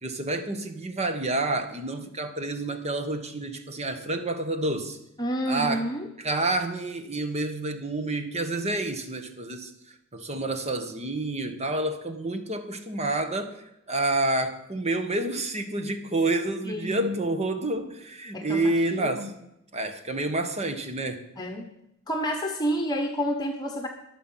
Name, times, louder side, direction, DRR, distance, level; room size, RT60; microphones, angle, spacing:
voice 1, 0.0-5.0 5.5-5.8 6.2-9.7 10.1-19.3 19.7-21.2, right 2 dB, 30° right, 1.4 m, -29 dB
voice 2, 5.2-6.1 16.6-17.3 18.3-18.6 18.9-19.3 21.4-21.7 22.1-23.9, equal, 20° left, 1.2 m, -29 dB
22.5 x 7.7 x 5.8 m
head